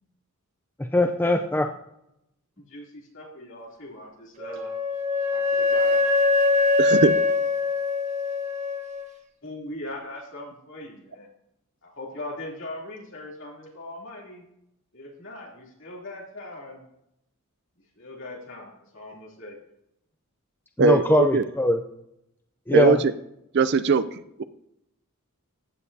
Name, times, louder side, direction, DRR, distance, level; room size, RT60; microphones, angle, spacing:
voice 1, 0.9-1.7 20.8-21.8 22.7-23.0, left 1 dB, 10° left, 5 dB, 0.4 m, -21 dB
voice 2, 2.7-4.7 5.3-6.0 9.4-11.3 11.8-14.4 14.9-16.8 18.0-19.6, left 1 dB, 60° left, -2 dB, 3.1 m, -40 dB
Wind instrument woodwind instrument, 4.4-9.0, left 3 dB, 30° right, 1.3 m, -23 dB
voice 3, 6.8-7.1 20.8-21.4 22.7-23.1 23.5-24.0, right 4 dB, 50° right, 13 dB, 0.4 m, -20 dB
15.0 x 8.5 x 2.8 m, 0.80 s
head